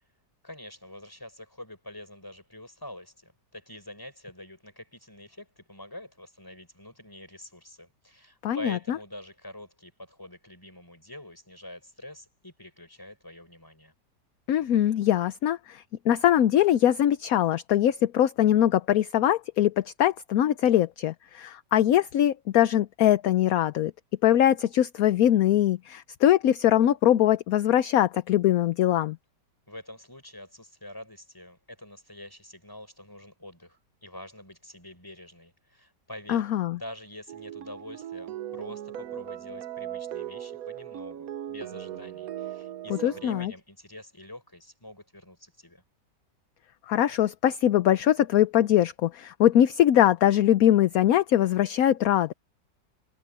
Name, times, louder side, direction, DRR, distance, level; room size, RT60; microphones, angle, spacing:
voice 1, 0.4-13.9 29.7-36.5 36.7-45.8, left 1 dB, 10° left, 5.6 m, -45 dB
voice 2, 8.4-9.0 14.5-23.9 24.2-29.2 36.3-36.8 42.9-43.5 46.9-52.3, left 11 dB, 65° left, 1.0 m, -22 dB
sound 1, 37.3-43.5, right 11 dB, 60° right, 1.2 m, -38 dB
omnidirectional pair, 1.9 m